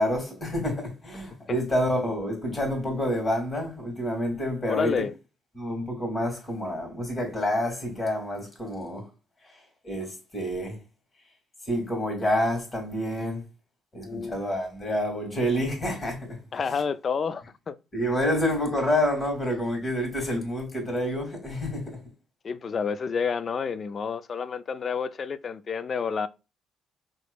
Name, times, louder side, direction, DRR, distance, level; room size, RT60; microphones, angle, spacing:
voice 1, 0.0-5.0 5.5-9.0 9.8-10.8 11.7-13.4 13.9-16.4 16.7-16.8 17.9-22.0, equal, 35° left, 2.2 m, -28 dB
voice 2, 4.7-5.1 14.0-14.4 16.5-17.8 22.4-26.3, left 6 dB, 50° left, 0.4 m, -29 dB
4.3 x 3.0 x 2.3 m
supercardioid pair, 60°, 0 cm